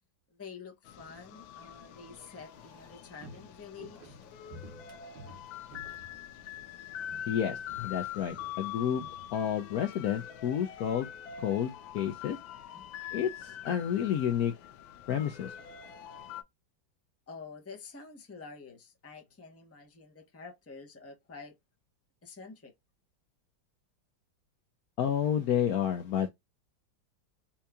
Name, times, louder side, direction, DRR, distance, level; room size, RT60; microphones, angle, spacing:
voice 1, 0.3-4.2 12.7-12.9 17.3-21.5 22.2-22.7, left 5 dB, 15° left, 0.6 m, -48 dB
sound 1, 0.8-16.4, left 10 dB, 85° left, 1.4 m, -44 dB
Walk footsteps, 2.4-6.8 7.0-7.4 7.7-10.0 10.3-10.4, right 1 dB, 75° right, 1.7 m, -52 dB
voice 2, 7.3-9.0 9.3-11.1 11.4-12.4 13.1-14.5 15.1-15.5 25.0-26.3, left 9 dB, 70° left, 0.9 m, -30 dB
4.4 x 2.8 x 2.3 m
omnidirectional pair, 2.0 m